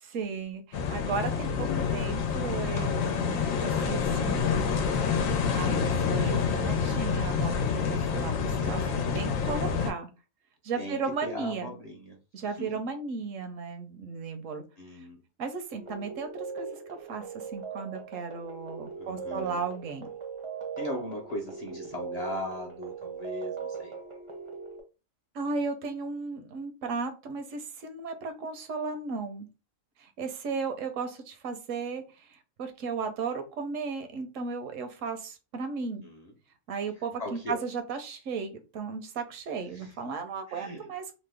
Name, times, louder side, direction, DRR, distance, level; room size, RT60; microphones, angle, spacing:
voice 1, 0.0-4.6 5.5-10.1 10.6-11.7 12.3-14.6 15.4-16.7 17.1-20.1 25.3-29.5 30.0-36.0 36.7-41.1, right 5 dB, 75° right, 7 dB, 1.0 m, -35 dB
sound 1, 0.7-9.9, left 6 dB, 85° left, 1.0 m, -28 dB
voice 2, 1.2-2.3 10.8-12.2 12.6-12.8 14.8-15.2 19.0-19.6 20.8-23.9 36.0-36.3 37.2-37.6 39.7-39.9 40.5-40.9, left 1 dB, 40° left, -2 dB, 0.6 m, -39 dB
sound 2, 15.7-24.8, right 5 dB, 40° right, 0.4 m, -40 dB
3.0 x 2.1 x 3.3 m, 0.30 s
omnidirectional pair, 1.4 m